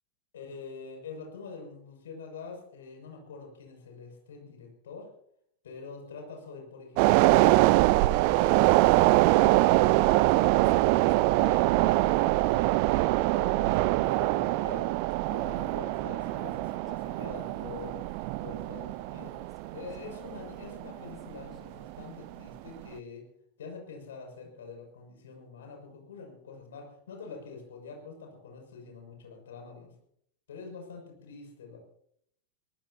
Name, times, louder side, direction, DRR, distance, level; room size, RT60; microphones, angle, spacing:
voice 1, 0.3-5.1 5.6-9.5 10.2-14.9 15.3-18.0 18.4-19.4 19.7-23.3 23.6-29.9 30.5-31.8, left 4 dB, 60° left, 2 dB, 6.5 m, -45 dB
sound 1, 7.0-21.5 21.9-22.0, right 19 dB, 45° right, 0.5 m, -24 dB
Singing, 9.3-18.7 19.2-22.1, left 3 dB, 25° left, 4.5 m, -56 dB
24.0 x 18.5 x 2.9 m, 0.70 s
figure-of-eight pair, 90°, 0 cm